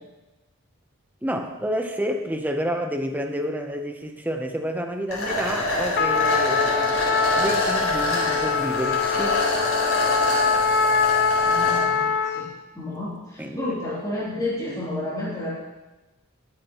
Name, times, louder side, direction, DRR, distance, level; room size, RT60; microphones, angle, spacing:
voice 1, 1.2-7.0 7.3-9.5 13.4-13.8, equal, 10° right, 4 dB, 0.8 m, -29 dB
sound 1, 5.1-11.8, left 2 dB, 75° left, 4.2 m, -26 dB
Trumpet, 5.9-12.5, left 5 dB, 50° left, 0.7 m, -23 dB
voice 2, 11.4-12.5 12.7-15.5, left 1 dB, 15° left, -8 dB, 3.1 m, -31 dB
20.0 x 8.6 x 3.0 m, 1.1 s
head